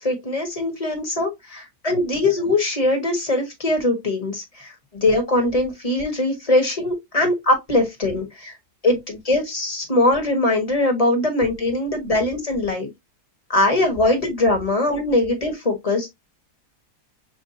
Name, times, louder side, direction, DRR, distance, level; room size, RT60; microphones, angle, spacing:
voice 1, 0.0-8.5 8.8-12.9 13.5-16.1, left 2 dB, 25° left, 1.4 m, -21 dB
6.4 x 2.4 x 2.7 m
omnidirectional pair, 1.8 m